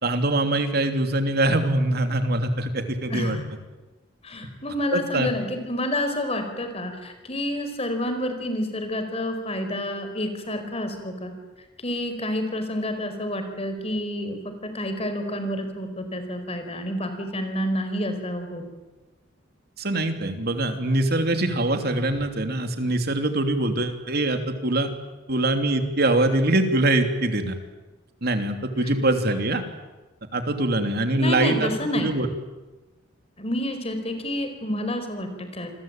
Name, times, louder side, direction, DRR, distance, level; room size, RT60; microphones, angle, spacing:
voice 1, 0.0-3.4 4.9-5.3 19.8-24.9 25.3-27.6 28.2-29.6 30.3-32.3, right 2 dB, 55° right, 6 dB, 3.0 m, -23 dB
voice 2, 3.1-3.5 4.2-11.3 11.8-18.6 28.8-28.9 31.1-32.1 33.4-35.7, left 1 dB, 30° left, 7 dB, 4.9 m, -29 dB
Sigh, 21.8-22.3, left 1 dB, 80° right, 6.1 m, -39 dB
28.5 x 22.0 x 9.0 m, 1.2 s
head